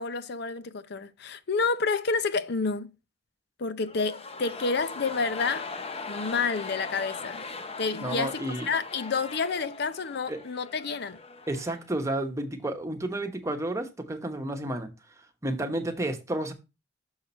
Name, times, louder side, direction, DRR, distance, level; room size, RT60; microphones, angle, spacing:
voice 1, 0.0-2.9 3.6-5.7 6.1-7.4 7.8-8.4 8.7-11.2, left 4 dB, 60° left, 0.6 m, -29 dB
sound 1, 3.8-11.9 12.2-12.3, left 4 dB, 35° left, 0.8 m, -40 dB
voice 2, 8.0-8.7 10.3-10.4 11.5-14.9 15.4-16.5, right 1 dB, 15° right, 1.1 m, -31 dB
6.5 x 5.7 x 4.3 m
head